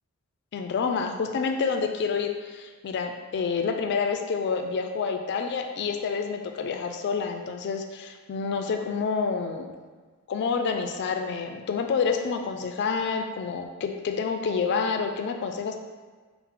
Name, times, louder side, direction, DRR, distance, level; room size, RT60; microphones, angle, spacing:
voice 1, 0.5-9.7 10.3-15.8, left 5 dB, 50° left, 5 dB, 0.3 m, -28 dB
3.7 x 2.0 x 4.3 m, 1.4 s
head